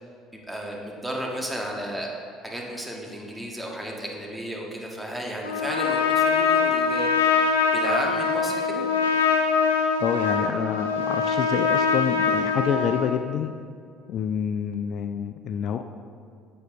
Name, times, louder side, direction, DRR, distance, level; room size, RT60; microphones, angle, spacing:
voice 1, 0.3-2.1 2.4-7.1 7.7-8.8, right 1 dB, 5° right, -1 dB, 1.6 m, -33 dB
Trumpet, 5.4-13.1, left 5 dB, 85° left, 0.6 m, -23 dB
voice 2, 10.0-13.5 14.1-15.8, left 7 dB, 55° left, 8 dB, 0.3 m, -27 dB
7.8 x 6.9 x 3.7 m, 2.4 s
hypercardioid pair, 60°, 0 cm